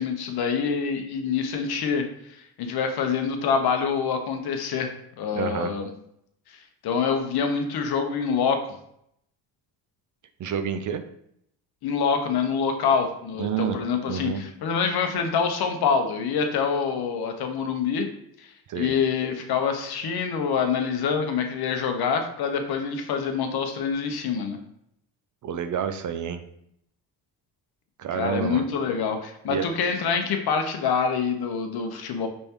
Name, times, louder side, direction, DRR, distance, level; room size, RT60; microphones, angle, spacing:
voice 1, 0.0-2.1 2.4-5.9 6.8-8.6 11.8-18.1 18.4-18.5 18.7-24.6 28.1-32.3, left 6 dB, 55° left, 5 dB, 0.9 m, -26 dB
voice 2, 5.3-5.7 10.4-11.0 13.4-13.8 14.1-14.4 18.7-18.9 25.4-26.4 28.0-28.7 29.5-29.7, right 8 dB, 45° right, 8 dB, 0.5 m, -29 dB
5.3 x 3.4 x 2.9 m, 0.73 s
supercardioid pair, 85°, 45 cm